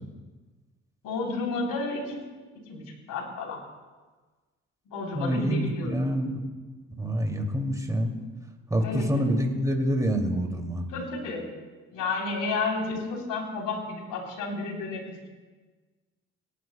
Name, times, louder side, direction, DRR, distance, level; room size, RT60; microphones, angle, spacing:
voice 1, 1.0-2.2 2.7-2.8 3.1-3.6 4.9-5.9 8.8-9.3 10.9-11.5 11.9-15.2, left 3 dB, 70° left, -1 dB, 3.9 m, -31 dB
voice 2, 5.1-6.4 6.9-8.1 8.7-10.8, equal, 10° right, 2 dB, 2.7 m, -27 dB
28.0 x 11.0 x 2.3 m, 1.3 s
hypercardioid pair, 45°, 34 cm